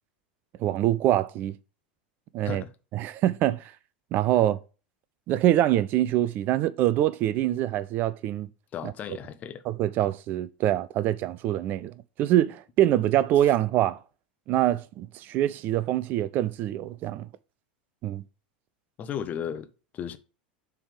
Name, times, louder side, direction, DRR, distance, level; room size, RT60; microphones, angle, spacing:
voice 1, 0.6-1.6 2.3-2.6 2.9-3.7 4.1-4.6 5.3-8.5 8.8-8.9 9.7-14.0 14.5-17.3 18.0-18.2, right 13 dB, 40° right, 0.4 m, -24 dB
voice 2, 8.7-9.6 19.0-19.7 19.9-20.2, left 8 dB, 30° left, 0.7 m, -34 dB
7.0 x 3.5 x 4.9 m
figure-of-eight pair, 85°, 5 cm